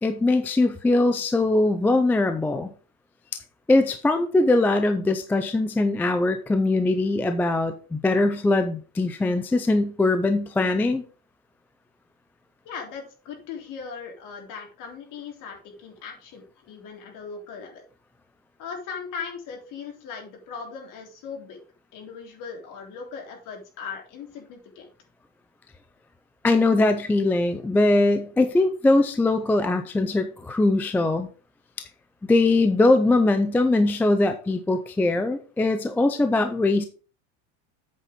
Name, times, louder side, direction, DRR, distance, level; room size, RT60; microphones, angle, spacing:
voice 1, 0.0-2.7 3.7-11.0 26.4-31.3 31.8-31.9 32.3-36.9, left 2 dB, 5° left, 8 dB, 0.4 m, -21 dB
voice 2, 12.6-17.8 18.6-21.6 21.9-24.9, left 6 dB, 50° left, 2 dB, 3.6 m, -38 dB
8.3 x 5.8 x 5.1 m, 0.37 s
supercardioid pair, 145°, 41 cm